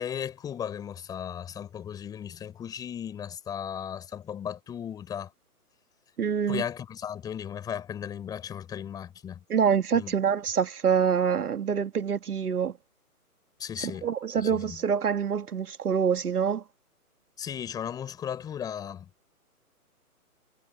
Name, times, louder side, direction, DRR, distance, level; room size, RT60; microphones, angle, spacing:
voice 1, 0.0-5.3 6.5-9.4 9.9-10.1 13.6-14.1 14.4-14.8 17.4-19.1, left 9 dB, 10° left, 6.3 m, -36 dB
voice 2, 6.2-6.6 9.5-12.7 14.0-16.6, right 7 dB, 80° right, 2.0 m, -26 dB
hypercardioid pair, 170°, 44 cm